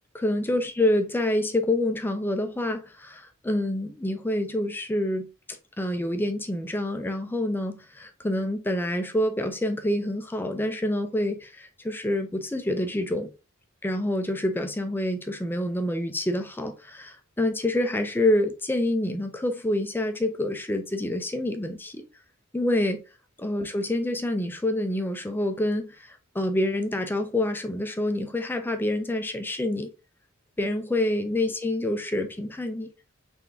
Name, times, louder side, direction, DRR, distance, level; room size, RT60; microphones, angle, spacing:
voice 1, 0.1-5.3 5.8-13.3 13.8-22.0 22.5-23.0 23.4-29.9 30.6-32.9, left 1 dB, 10° left, 0.5 m, -27 dB
3.9 x 3.4 x 2.7 m
head